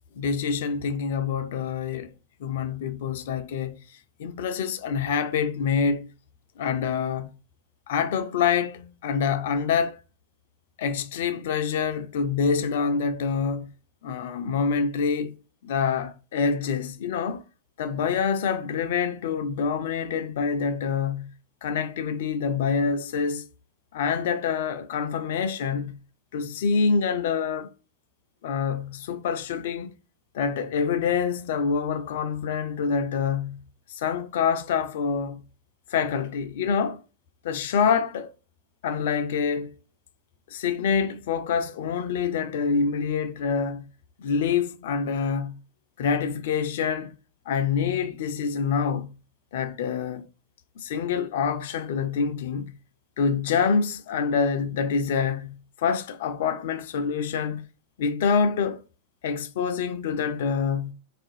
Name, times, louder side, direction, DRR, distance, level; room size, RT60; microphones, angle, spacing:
voice 1, 0.2-2.1 2.4-3.8 4.2-6.1 6.6-7.3 7.9-10.0 10.8-13.7 14.0-15.4 15.6-17.4 17.8-21.3 21.6-23.5 23.9-26.0 26.3-27.7 28.4-29.9 30.3-33.6 33.9-35.4 35.9-37.0 37.4-38.3 38.8-39.7 40.5-43.9 44.2-45.6 46.0-47.1 47.5-49.1 49.5-50.3 50.8-52.7 53.2-57.7 58.0-58.8 59.2-60.9, left 6 dB, 55° left, 0.3 m, -26 dB
3.9 x 2.4 x 2.6 m
figure-of-eight pair, 90°, 0 cm